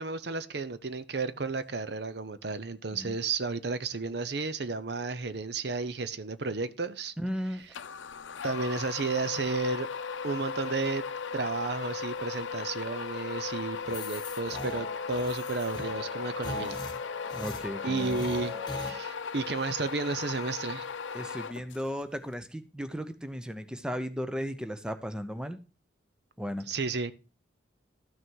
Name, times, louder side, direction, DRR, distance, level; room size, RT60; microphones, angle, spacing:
voice 1, 0.0-7.1 8.4-9.9 10.2-11.0 11.3-16.8 17.8-20.9 26.7-27.1, right 3 dB, 60° right, 0.7 m, -32 dB
voice 2, 7.2-7.6 17.3-18.2 21.1-25.6 26.4-26.7, equal, 5° right, 0.7 m, -35 dB
sound 1, 7.7-22.0, left 5 dB, 85° left, 0.6 m, -37 dB
sound 2, 13.9-18.9, left 3 dB, 25° left, 1.6 m, -40 dB
13.0 x 6.4 x 4.6 m
head